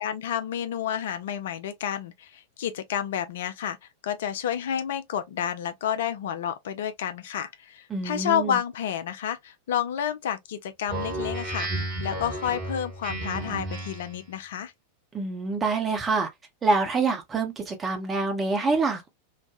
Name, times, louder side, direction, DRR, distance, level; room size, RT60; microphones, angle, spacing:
voice 1, 0.0-3.8 4.0-14.7, left 9 dB, 55° left, 0.4 m, -30 dB
voice 2, 7.9-8.6 15.1-16.3 16.6-19.1, right 3 dB, 20° right, 0.8 m, -26 dB
Speech synthesizer, 10.9-14.2, right 1 dB, 40° right, 1.2 m, -32 dB
3.2 x 2.1 x 2.4 m
figure-of-eight pair, 90°, 0 cm